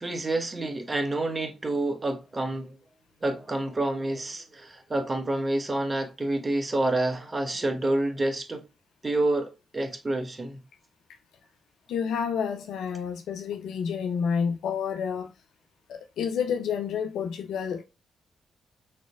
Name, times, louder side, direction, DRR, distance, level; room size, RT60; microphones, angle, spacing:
voice 1, 0.0-2.8 3.2-8.6 9.0-10.6, right 2 dB, 30° right, 1.3 m, -28 dB
voice 2, 11.9-15.3 15.9-17.8, left 7 dB, 70° left, 0.4 m, -29 dB
6.6 x 3.1 x 2.4 m
hypercardioid pair, 45°, 0 cm